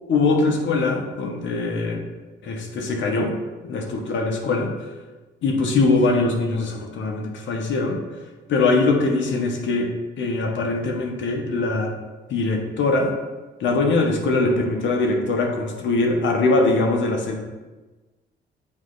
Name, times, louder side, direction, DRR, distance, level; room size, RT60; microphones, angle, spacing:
voice 1, 0.1-2.0 2.4-3.3 3.7-4.7 5.4-8.0 8.5-9.9 10.2-11.9 12.3-13.1 13.6-17.5, left 3 dB, 70° left, 2 dB, 1.1 m, -22 dB
8.6 x 3.2 x 3.9 m, 1.2 s
cardioid pair, 90°, 20 cm